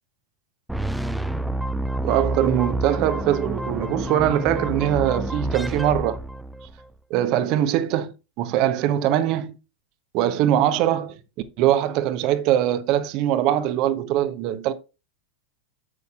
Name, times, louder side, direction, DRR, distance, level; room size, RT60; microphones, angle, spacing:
sound 1, 0.7-6.8, right 1 dB, ahead, 0.5 m, -28 dB
voice 1, 2.0-6.2 7.1-8.1 8.4-9.6 10.1-11.2 11.6-14.7, right 11 dB, 40° right, 0.9 m, -22 dB
9.7 x 8.1 x 2.4 m
figure-of-eight pair, 90°, 0 cm